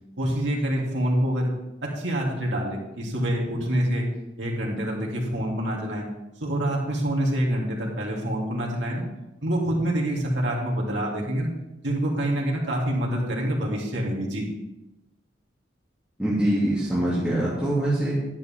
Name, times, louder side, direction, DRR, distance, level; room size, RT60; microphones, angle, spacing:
voice 1, 0.2-1.5 1.8-4.1 4.4-6.1 6.4-9.1 9.4-11.5 11.8-14.5, right 1 dB, 70° right, -3 dB, 2.9 m, -26 dB
voice 2, 16.2-18.1, right 1 dB, 5° right, -10 dB, 2.7 m, -24 dB
11.0 x 10.5 x 3.7 m, 0.96 s
head